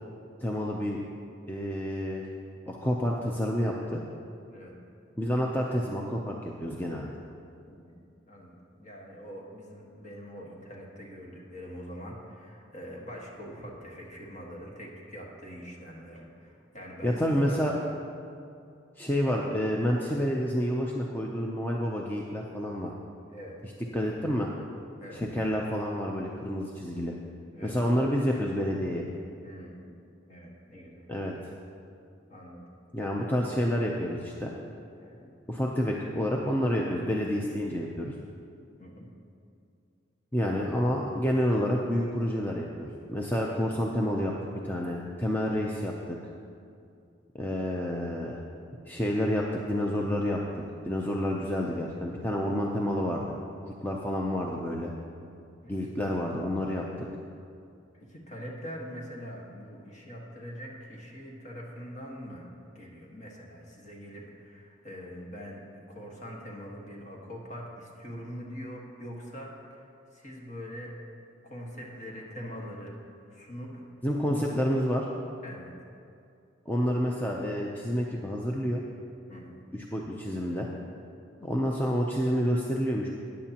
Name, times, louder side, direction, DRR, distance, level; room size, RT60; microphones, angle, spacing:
voice 1, 0.4-1.0 1.5-2.3 2.7-4.0 5.2-7.1 17.0-17.8 19.0-22.9 23.9-24.5 25.1-27.1 27.6-29.0 31.1-31.4 32.9-34.5 35.5-38.1 40.3-44.3 44.6-46.2 47.3-48.4 48.9-50.4 50.8-53.3 53.6-54.9 55.7-57.1 74.0-75.0 76.7-78.8 79.7-80.7 81.4-83.1, equal, 10° left, -2 dB, 0.5 m, -29 dB
voice 2, 7.7-17.9 23.3-23.6 25.0-25.2 27.5-27.7 29.4-30.0 30.3-31.1 32.3-32.6 33.2-33.3 35.0-35.3 38.8-39.1 55.6-55.9 58.0-62.5 62.7-69.9 70.1-70.9 71.4-72.9 73.3-73.9 74.2-74.6 75.4-75.7 79.3-79.6, equal, 40° left, -2 dB, 1.6 m, -43 dB
14.0 x 9.6 x 2.9 m, 2.5 s
head